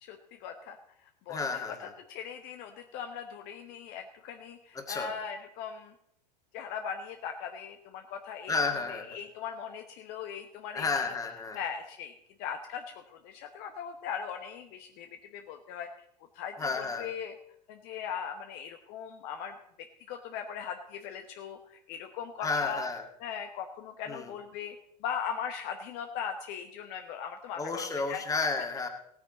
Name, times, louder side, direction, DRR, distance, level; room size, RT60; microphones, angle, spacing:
voice 1, 0.0-0.8 1.3-5.9 6.5-10.9 11.5-15.9 16.3-17.3 17.7-19.5 20.1-22.8 23.2-28.2, left 7 dB, 50° left, 5 dB, 1.0 m, -39 dB
voice 2, 1.3-1.9 4.7-5.1 8.5-9.2 10.7-11.6 16.6-17.1 22.4-23.0 24.1-24.3 27.6-28.9, left 4 dB, 15° left, 4 dB, 2.0 m, -32 dB
16.5 x 9.0 x 4.0 m, 0.74 s
figure-of-eight pair, 85°, 21 cm